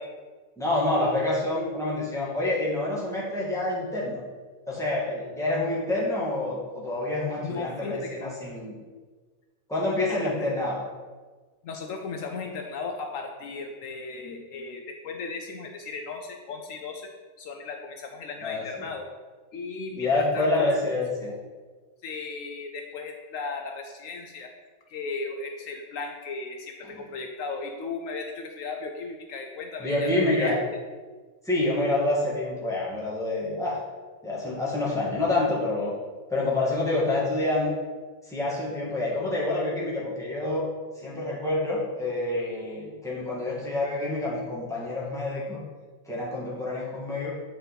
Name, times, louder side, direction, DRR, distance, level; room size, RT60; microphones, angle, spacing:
voice 1, 0.6-4.2 4.7-8.7 9.7-10.8 18.4-18.6 19.9-21.4 29.8-30.6 31.4-33.8 34.2-35.9 36.3-37.8 38.3-40.7 41.0-45.6 46.1-47.3, left 2 dB, ahead, -7 dB, 1.7 m, -27 dB
voice 2, 7.4-8.3 10.1-10.5 11.6-17.1 17.4-19.1 19.5-20.7 22.0-24.5 24.9-30.5, left 4 dB, 70° left, 3 dB, 1.0 m, -36 dB
8.6 x 4.0 x 4.0 m, 1.4 s
omnidirectional pair, 1.5 m